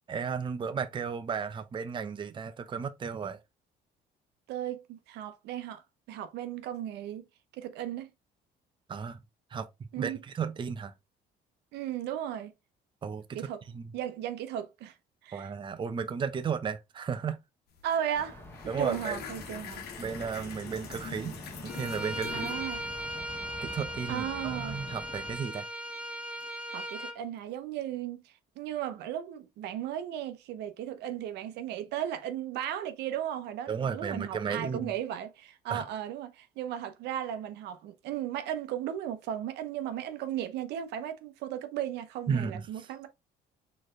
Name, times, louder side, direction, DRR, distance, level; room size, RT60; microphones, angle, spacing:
voice 1, 0.1-3.4 8.9-9.2 9.5-10.9 13.0-13.4 13.7-13.9 15.3-17.4 18.6-19.2 20.0-22.5 23.6-25.7 33.7-34.9 35.7-35.8 42.3-43.1, right 6 dB, 30° right, 0.6 m, -34 dB
voice 2, 4.5-5.8 6.1-7.2 7.5-8.1 9.9-10.2 11.7-12.5 13.3-13.6 13.9-14.9 15.2-15.5 17.8-18.4 18.8-19.8 22.3-22.8 24.1-24.8 26.7-43.1, right 10 dB, 85° right, 0.9 m, -36 dB
sound 1, 17.7-17.9 18.2-23.2, left 7 dB, 70° left, 1.2 m, -44 dB
sound 2, 18.1-25.3, left 1 dB, 15° left, 1.5 m, -46 dB
Bowed string instrument, 21.7-27.2, equal, 5° right, 1.0 m, -38 dB
4.4 x 3.3 x 3.7 m
cardioid pair, 110°, 17 cm